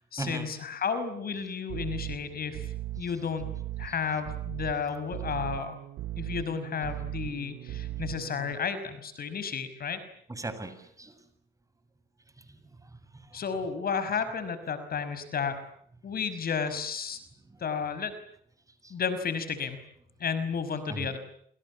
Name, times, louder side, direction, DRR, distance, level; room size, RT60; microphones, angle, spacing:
voice 1, 0.1-2.7 3.0-3.5 3.8-5.8 6.2-10.0 13.3-15.6 16.0-17.2 17.6-18.1 18.9-19.8 20.2-21.2, left 6 dB, 50° left, 11 dB, 5.5 m, -32 dB
sound 1, 1.7-8.5, right 14 dB, 75° right, 1.8 m, -38 dB
voice 2, 10.3-11.2 12.5-12.6 12.8-13.4 18.8-18.9 20.9-21.1, right 3 dB, 15° right, 10 dB, 7.0 m, -39 dB
28.5 x 27.5 x 7.3 m, 0.67 s
supercardioid pair, 80°, 20 cm